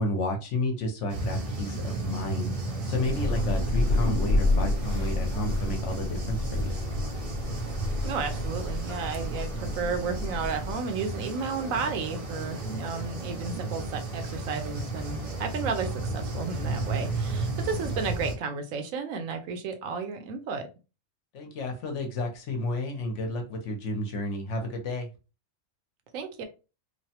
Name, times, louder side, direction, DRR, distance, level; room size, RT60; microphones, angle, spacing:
voice 1, 0.0-2.5 2.9-6.8 21.3-25.1, left 1 dB, 65° left, 3 dB, 1.0 m, -31 dB
sound 1, 1.1-18.4, right 2 dB, 45° right, 0.5 m, -34 dB
Thunder / Rain, 3.0-10.7, left 2 dB, 35° left, 0.6 m, -29 dB
voice 2, 8.0-20.6 26.1-26.4, right 5 dB, 80° right, 6 dB, 1.0 m, -33 dB
3.1 x 2.1 x 2.7 m, 0.31 s
omnidirectional pair, 1.4 m